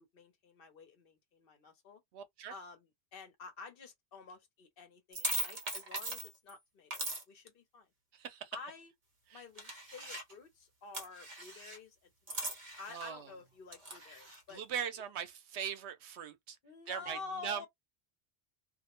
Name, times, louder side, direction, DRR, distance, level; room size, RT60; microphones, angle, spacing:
voice 1, 0.0-2.0 2.5-7.9 8.5-8.9 9.3-12.0 12.3-14.6 14.9-15.0 16.6-17.7, left 4 dB, 60° left, 0.9 m, -50 dB
voice 2, 2.1-2.5 8.1-8.6 9.3-9.4 12.9-13.3 14.5-16.6 16.9-17.7, right 8 dB, 85° right, 0.9 m, -40 dB
sound 1, 5.1-6.5 6.9-7.2 9.6-10.3 10.9-11.8 12.3-13.1 13.7-14.4, right 2 dB, 40° right, 0.9 m, -39 dB
2.3 x 2.1 x 2.9 m
omnidirectional pair, 1.1 m